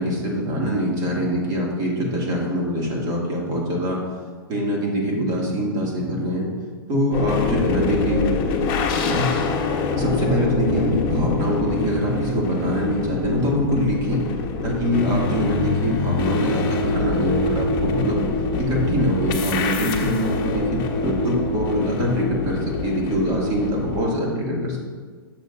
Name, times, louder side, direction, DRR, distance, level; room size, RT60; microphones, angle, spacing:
voice 1, 0.0-4.0 4.5-6.5 6.9-8.3 9.1-9.3 9.9-14.2 14.6-18.2 18.6-24.8, equal, 30° right, -2 dB, 2.3 m, -23 dB
sound 1, 7.1-24.0, left 3 dB, 35° left, 1.0 m, -25 dB
10.5 x 7.3 x 2.6 m, 1.5 s
hypercardioid pair, 130°, 13 cm